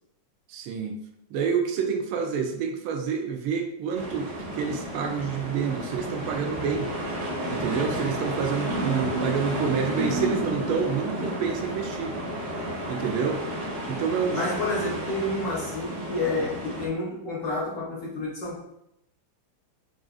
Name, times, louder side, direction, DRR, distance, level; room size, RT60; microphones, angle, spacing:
voice 1, 0.5-1.0 1.3-6.9 7.5-12.1 12.9-13.4 13.9-14.4, right 6 dB, 90° right, 4 dB, 1.4 m, -28 dB
sound 1, 3.9-16.9, equal, 55° right, 1.5 m, -32 dB
voice 2, 8.6-10.5 14.3-18.6, left 1 dB, 65° left, -3 dB, 1.0 m, -30 dB
6.1 x 2.5 x 2.3 m, 0.81 s
omnidirectional pair, 2.3 m